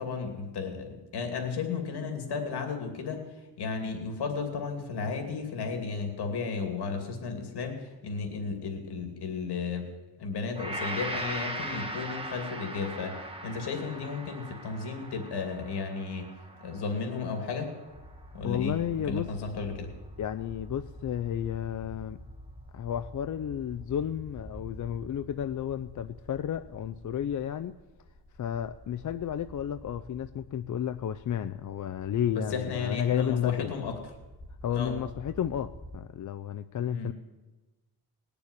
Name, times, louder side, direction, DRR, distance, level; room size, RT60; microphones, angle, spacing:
voice 1, 0.0-9.9 10.2-13.2 13.4-16.3 16.6-17.7 18.3-18.8 19.1-19.9 32.3-33.9 34.7-34.9 36.9-37.1, left 5 dB, 85° left, 4 dB, 2.7 m, -34 dB
Gong, 10.6-18.9 19.3-19.5, right 1 dB, 15° right, 1.7 m, -39 dB
sound 1, 17.9-36.0, equal, 25° left, 2.5 m, -48 dB
voice 2, 18.4-19.3 20.2-22.2 22.7-27.7 28.4-33.7 34.6-37.1, left 9 dB, 50° left, 9 dB, 0.5 m, -32 dB
19.5 x 6.9 x 9.8 m, 1.1 s
wide cardioid pair, 155°, 39 cm